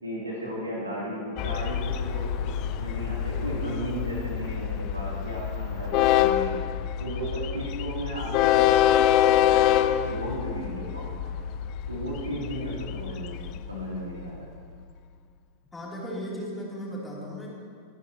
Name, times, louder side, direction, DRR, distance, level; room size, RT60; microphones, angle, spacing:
voice 1, 0.0-6.6 7.0-11.2 11.9-14.4, right 1 dB, 80° right, -5 dB, 3.2 m, -35 dB
Train, 1.4-14.4, left 11 dB, 40° left, 0.4 m, -26 dB
voice 2, 15.7-17.5, equal, 10° left, -5 dB, 3.4 m, -36 dB
24.0 x 10.0 x 3.0 m, 2.1 s
figure-of-eight pair, 90°, 0 cm